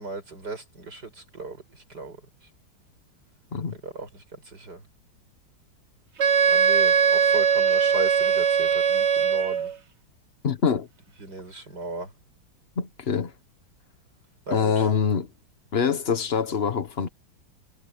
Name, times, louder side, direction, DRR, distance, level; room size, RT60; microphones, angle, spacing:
voice 1, 0.0-1.6 1.9-2.2 3.7-4.2 4.5-4.8 6.5-9.7 11.2-12.1 14.5-14.7, right 3 dB, 55° right, 7.9 m, -36 dB
Wind instrument woodwind instrument, 6.2-9.8, right 6 dB, 40° right, 1.2 m, -20 dB
voice 2, 10.4-10.9 12.8-13.3 14.5-15.3 15.7-17.1, left 6 dB, 40° left, 1.2 m, -24 dB
omnidirectional pair, 2.1 m